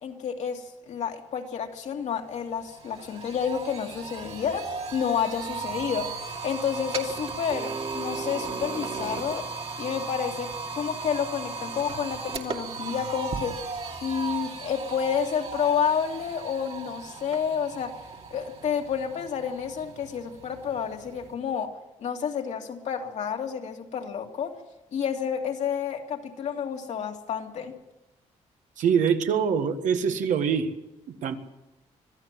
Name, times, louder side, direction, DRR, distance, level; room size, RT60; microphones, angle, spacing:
voice 1, 0.0-6.1 6.4-9.5 9.8-13.6 14.0-18.0 18.3-21.7 22.0-24.6 24.9-27.7, left 7 dB, 65° left, 3 dB, 2.4 m, -30 dB
sound 1, 1.9-2.0 2.3-21.3, right 4 dB, 50° right, 2.5 m, -36 dB
voice 2, 28.8-30.7 31.2-31.3, right 7 dB, 80° right, 7 dB, 1.7 m, -24 dB
25.5 x 15.0 x 7.5 m, 0.97 s
cardioid pair, 105°, 13 cm